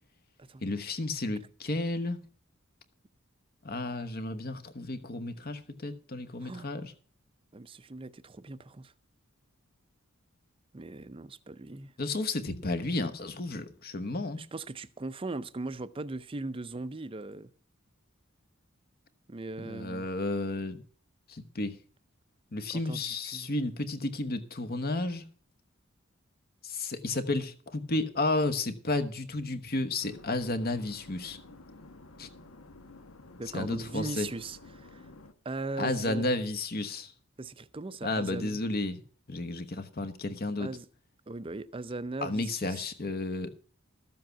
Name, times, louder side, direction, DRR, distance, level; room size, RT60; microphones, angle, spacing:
voice 1, 0.6-2.2 3.6-6.9 12.0-14.4 19.6-20.8 21.3-21.8 22.5-25.2 26.6-31.4 32.2-32.3 33.5-34.3 35.8-37.1 38.0-39.0 39.3-40.7 42.2-43.6, left 2 dB, 45° left, 1.2 m, -32 dB
voice 2, 7.5-8.9 10.7-11.9 14.3-17.5 19.3-20.1 22.7-23.5 33.4-35.1 35.4-36.2 37.4-38.6 40.6-40.9 41.3-42.9, right 2 dB, 25° right, 0.5 m, -39 dB
sound 1, 30.0-35.3, left 2 dB, 75° left, 1.1 m, -51 dB
13.0 x 7.6 x 5.8 m
head